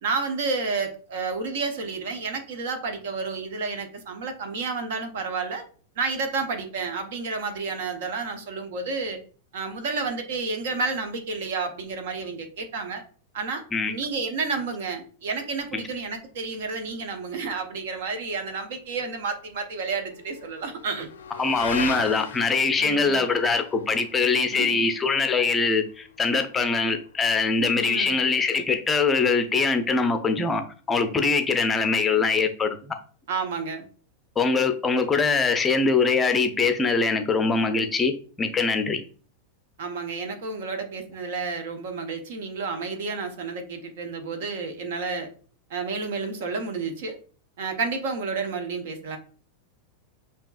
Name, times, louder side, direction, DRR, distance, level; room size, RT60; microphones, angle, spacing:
voice 1, 0.0-5.7 6.0-9.2 9.5-13.0 13.3-13.6 13.9-21.1 22.8-23.3 24.5-24.9 27.8-28.2 33.3-33.8 39.8-45.3 45.7-47.2 47.6-49.2, right 4 dB, 55° right, 0.8 m, -30 dB
Motorcycle / Accelerating revving vroom, 18.7-27.5, left 6 dB, 65° left, 0.4 m, -40 dB
voice 2, 21.4-30.6 30.9-33.0 34.4-39.0, left 4 dB, 15° left, 0.5 m, -23 dB
6.6 x 2.8 x 2.4 m
figure-of-eight pair, 90°, 0 cm